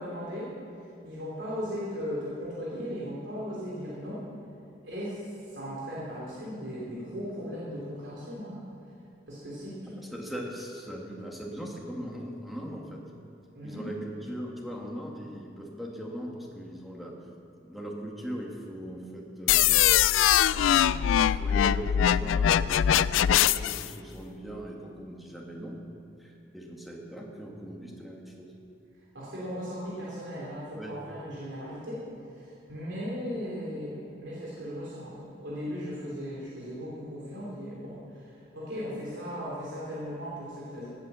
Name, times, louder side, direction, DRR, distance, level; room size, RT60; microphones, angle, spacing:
voice 1, 0.0-4.2 4.8-8.6 9.3-10.1 13.5-13.9 29.1-32.1 32.3-40.9, equal, 70° right, -7 dB, 3.2 m, -37 dB
voice 2, 10.1-13.0 13.6-17.2 17.6-19.9 20.5-25.8 26.2-28.5 30.8-31.0, right 1 dB, ahead, -2 dB, 1.8 m, -40 dB
sound 1, 19.5-23.9, left 10 dB, 85° left, 0.3 m, -22 dB
17.5 x 9.2 x 6.9 m, 2.5 s
head